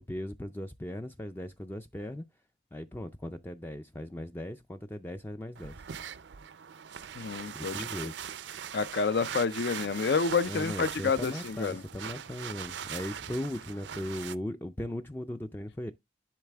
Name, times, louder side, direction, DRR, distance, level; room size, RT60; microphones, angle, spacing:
voice 1, 0.0-2.2 2.7-5.8 7.5-8.1 10.5-15.9, left 1 dB, 10° left, 0.3 m, -38 dB
sound 1, 5.6-14.4, right 8 dB, 90° right, 0.5 m, -41 dB
voice 2, 7.2-7.8 8.7-11.8, left 5 dB, 70° left, 0.5 m, -29 dB
10.5 x 4.0 x 3.3 m
head